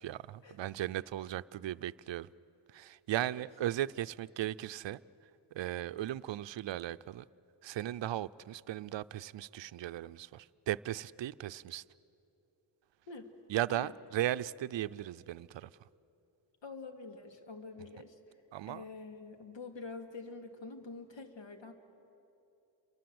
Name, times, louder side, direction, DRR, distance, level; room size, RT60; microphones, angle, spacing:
voice 1, 0.0-2.3 2.7-5.0 5.5-7.2 7.6-11.8 13.5-15.7 18.5-18.8, right 13 dB, 75° right, 0.6 m, -37 dB
voice 2, 16.6-18.4 18.7-21.7, left 3 dB, 80° left, 2.4 m, -46 dB
29.0 x 23.5 x 7.8 m
wide cardioid pair, 145°, 44 cm